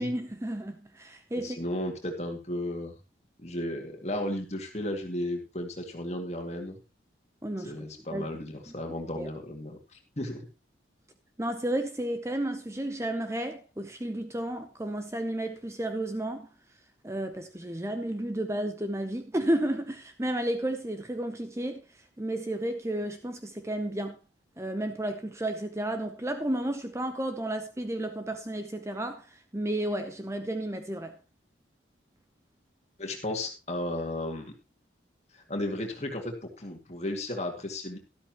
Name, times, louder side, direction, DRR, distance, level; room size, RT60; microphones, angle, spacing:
voice 1, 0.0-1.6 7.4-7.8 8.1-8.3 8.7-8.8 9.2-9.3 11.4-16.5 17.0-21.8 22.2-24.2 24.6-31.2, right 1 dB, 15° right, 0.7 m, -32 dB
voice 2, 1.3-3.0 3.4-6.8 7.6-10.5 33.0-34.5 35.3-38.0, left 1 dB, 35° left, 2.2 m, -34 dB
12.5 x 12.5 x 3.0 m
head